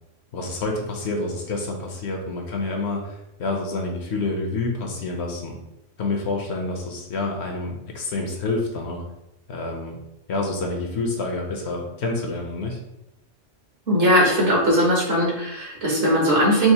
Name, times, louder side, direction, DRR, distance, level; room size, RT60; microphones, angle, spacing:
voice 1, 0.3-5.6 6.0-9.0 9.5-10.0 10.3-12.8, left 3 dB, 65° left, 2 dB, 0.9 m, -28 dB
voice 2, 13.9-16.7, equal, 55° right, -3 dB, 1.3 m, -19 dB
4.7 x 2.5 x 2.8 m, 0.88 s
omnidirectional pair, 1.3 m